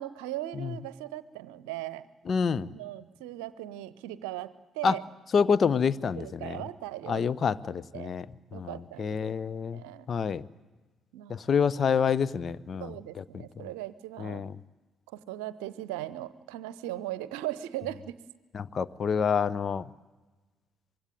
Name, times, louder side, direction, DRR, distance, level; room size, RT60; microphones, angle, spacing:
voice 1, 0.0-2.1 2.7-5.0 6.2-7.2 7.9-8.1 8.5-9.2 9.7-10.1 11.1-11.7 12.8-14.4 15.1-18.1, right 14 dB, 70° right, 16 dB, 0.8 m, -38 dB
voice 2, 2.3-2.7 4.8-5.0 5.3-6.6 7.1-8.3 8.5-9.8 10.1-10.4 11.3-13.7 14.2-14.5 18.5-19.9, left 6 dB, 45° left, 16 dB, 0.8 m, -28 dB
24.5 x 22.5 x 9.1 m, 1.3 s
figure-of-eight pair, 45°, 0 cm